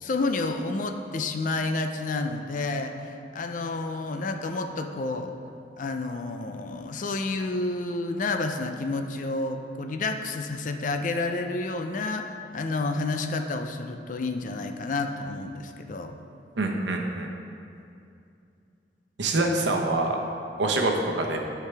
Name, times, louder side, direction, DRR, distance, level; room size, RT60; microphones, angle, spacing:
voice 1, 0.0-5.3 5.8-16.2, left 3 dB, 45° left, 6 dB, 0.5 m, -30 dB
voice 2, 16.6-17.3 19.2-20.2 20.6-21.4, right 2 dB, 85° right, 1 dB, 0.9 m, -25 dB
11.5 x 4.7 x 3.4 m, 2.5 s
head